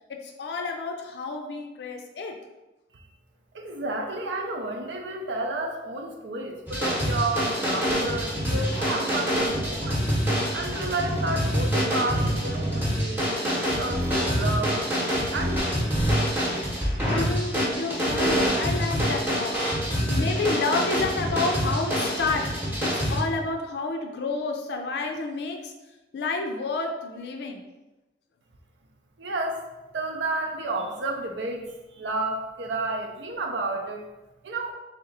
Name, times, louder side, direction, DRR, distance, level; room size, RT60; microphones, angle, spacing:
voice 1, 0.1-2.4 17.1-25.7 26.1-27.6, left 3 dB, 65° left, 3 dB, 0.4 m, -30 dB
voice 2, 3.5-10.0 10.5-15.9 29.2-29.7 29.9-34.1 34.4-34.7, right 2 dB, 85° right, 3 dB, 0.6 m, -31 dB
sound 1, 6.7-23.2, equal, 10° right, 0.8 m, -26 dB
3.3 x 2.9 x 3.9 m, 1.1 s
head